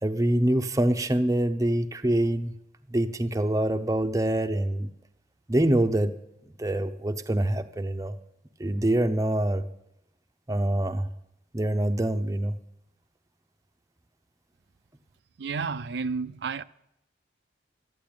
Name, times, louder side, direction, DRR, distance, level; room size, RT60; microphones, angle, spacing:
voice 1, 0.0-2.5 2.9-4.9 5.5-6.1 6.6-8.1 8.6-9.6 10.5-11.1 11.5-12.6, right 1 dB, 20° right, 0.7 m, -25 dB
voice 2, 15.4-16.6, right 5 dB, 65° right, 0.5 m, -31 dB
12.5 x 10.5 x 8.7 m
head